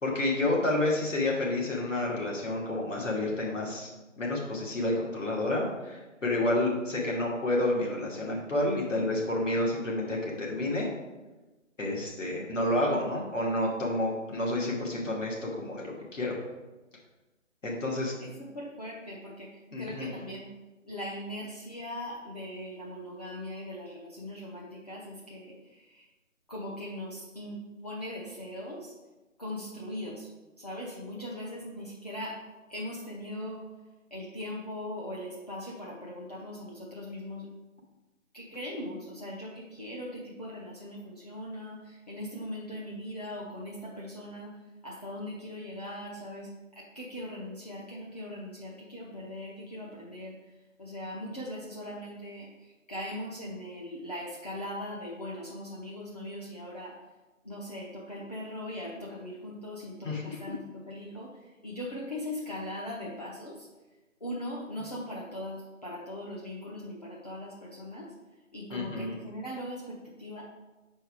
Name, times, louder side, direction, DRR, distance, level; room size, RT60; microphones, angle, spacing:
voice 1, 0.0-3.9 4.2-10.9 11.8-16.4 17.6-18.1 19.7-20.1 60.0-60.4 68.7-69.2, left 1 dB, 70° left, -3 dB, 2.3 m, -29 dB
voice 2, 18.2-19.5 19.8-20.5 20.8-26.1 26.5-28.9 29.4-30.3 30.6-32.4 32.7-33.7 34.1-37.5 38.3-44.5 44.8-46.5 46.8-50.4 50.8-57.0 57.4-63.7 64.2-68.1 68.5-70.4, left 1 dB, 30° left, -5 dB, 0.7 m, -40 dB
5.9 x 4.5 x 4.9 m, 1.1 s
figure-of-eight pair, 165°, 39 cm